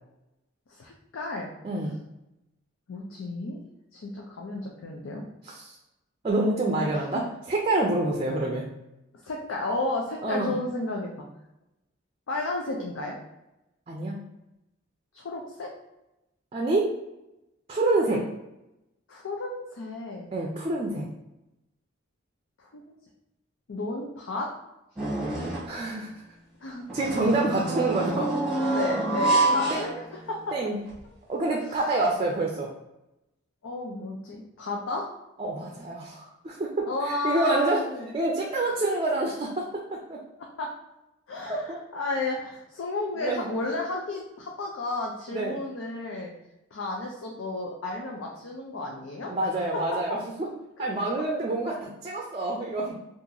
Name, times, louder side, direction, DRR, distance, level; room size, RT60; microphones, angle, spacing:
voice 1, 0.7-1.5 2.9-3.6 3.9-5.2 6.8-7.2 9.2-11.3 12.3-13.2 15.1-15.7 19.1-20.3 22.6-22.9 23.7-24.5 26.6-26.8 28.6-30.4 31.7-31.8 33.6-35.1 36.9-38.1 38.7-38.8 40.6-40.7 41.3-46.3 46.7-49.3 49.7-49.8 50.8-50.9, left 2 dB, 90° left, -1 dB, 0.5 m, -33 dB
voice 2, 1.6-2.0 5.4-5.7 6.2-8.7 10.2-10.5 13.9-14.1 16.5-17.0 17.7-18.3 20.3-21.1 25.6-26.2 26.9-28.3 29.7-29.9 30.5-30.8 31.3-32.7 35.4-37.8 38.1-40.2 41.5-41.6 43.2-43.5 45.3-45.6 49.3-50.5 50.8-52.9, right 2 dB, 30° right, -1 dB, 0.4 m, -27 dB
sound 1, 25.0-25.8 26.9-30.5 30.9-31.0 32.1-32.2, right 2 dB, 5° right, 0.9 m, -27 dB
2.8 x 2.5 x 3.8 m, 0.93 s
head